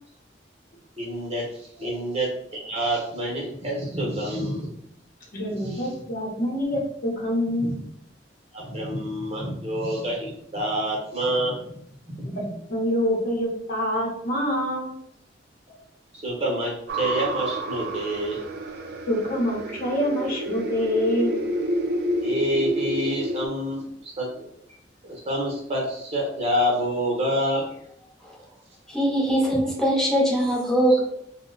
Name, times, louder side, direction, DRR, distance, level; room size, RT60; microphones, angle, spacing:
voice 1, 1.0-4.7 5.6-5.8 7.6-7.8 8.5-11.6 12.1-12.3 16.2-18.4 22.2-24.5 25.0-27.7, equal, 35° right, -2 dB, 0.9 m, -27 dB
voice 2, 5.3-7.7 12.3-15.0 19.1-21.4, equal, 50° left, -2 dB, 0.8 m, -26 dB
sound 1, 16.9-23.5, right 1 dB, 60° right, 0.4 m, -29 dB
voice 3, 28.9-31.0, right 1 dB, 5° left, -4 dB, 0.8 m, -22 dB
2.9 x 2.1 x 3.8 m, 0.73 s
head